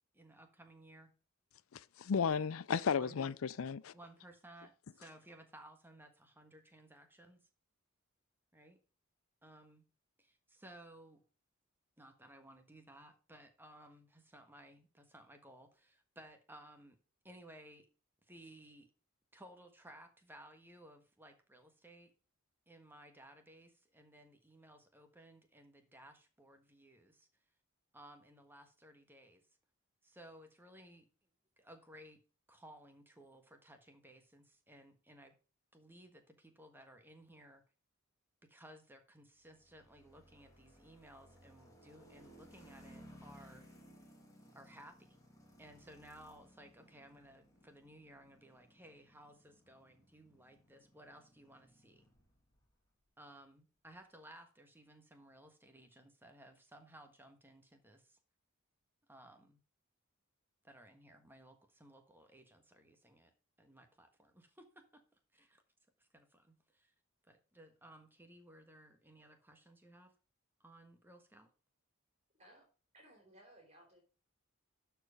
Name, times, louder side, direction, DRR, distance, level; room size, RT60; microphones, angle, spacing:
voice 1, 0.1-1.1 2.9-3.2 3.9-7.4 8.5-8.8 9.4-9.8 10.2-11.2 12.0-17.0 17.2-17.9 18.3-18.9 19.3-22.1 22.7-27.3 27.9-29.5 30.0-31.1 31.6-32.2 32.5-35.3 35.7-37.6 38.4-43.7 44.5-45.2 45.6-52.0 53.2-58.2 59.1-59.6 60.6-63.3 63.6-65.0 65.3-65.6 66.0-66.9 67.3-70.1 70.6-71.5, right 1 dB, 10° right, 1.5 m, -58 dB
voice 2, 1.7-3.9, left 6 dB, 70° left, 0.5 m, -34 dB
sound 1, 39.5-52.7, equal, 15° left, 2.6 m, -61 dB
voice 3, 72.3-72.6 72.9-74.0, right 1 dB, 30° right, 3.1 m, -61 dB
12.0 x 4.7 x 5.0 m
head